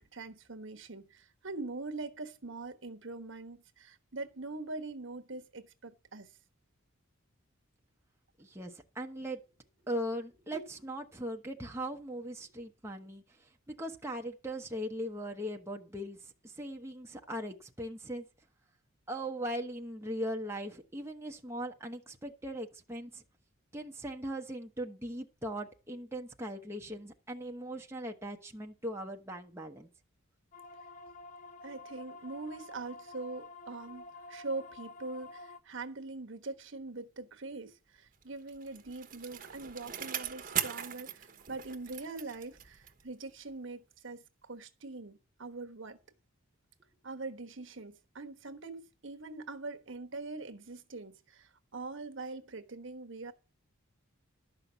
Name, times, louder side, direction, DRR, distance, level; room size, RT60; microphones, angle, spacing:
voice 1, 0.0-6.3 31.6-46.0 47.0-53.3, right 3 dB, 60° right, 1.2 m, -43 dB
voice 2, 8.4-9.4 9.9-13.5 13.8-18.2 19.1-23.2 23.7-29.9, equal, 10° right, 0.9 m, -39 dB
sound 1, 30.5-35.6, left 2 dB, 35° left, 0.8 m, -49 dB
Bicycle, 38.2-43.1 43.5-43.6, right 9 dB, 40° right, 1.1 m, -40 dB
12.0 x 5.8 x 8.0 m
head